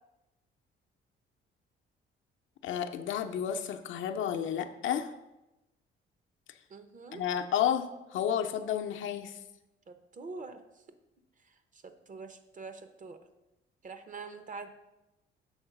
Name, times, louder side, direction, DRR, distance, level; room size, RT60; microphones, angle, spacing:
voice 1, 2.6-5.1 7.1-9.4, left 9 dB, 75° left, 6 dB, 0.6 m, -31 dB
voice 2, 6.7-7.2 9.9-10.6 11.4-13.2 13.8-14.7, right 4 dB, 40° right, 8 dB, 0.8 m, -45 dB
7.1 x 3.8 x 5.8 m, 0.96 s
cardioid pair, 90°, 20 cm